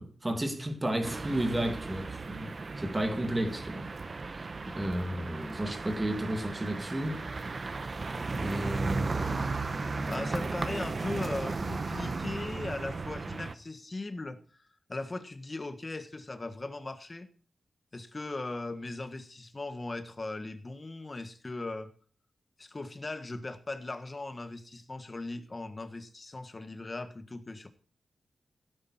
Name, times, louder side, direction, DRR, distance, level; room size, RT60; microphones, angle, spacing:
voice 1, 0.0-3.9 4.2-7.2 8.1-9.6, right 1 dB, 15° right, 2.4 m, -33 dB
sound 1, 1.0-13.5, right 3 dB, 40° right, 0.9 m, -35 dB
voice 2, 10.1-14.4 14.9-17.3 17.9-21.9 22.6-27.7, left 2 dB, 25° left, 1.5 m, -38 dB
16.5 x 9.8 x 4.2 m
wide cardioid pair, 130°, 0 cm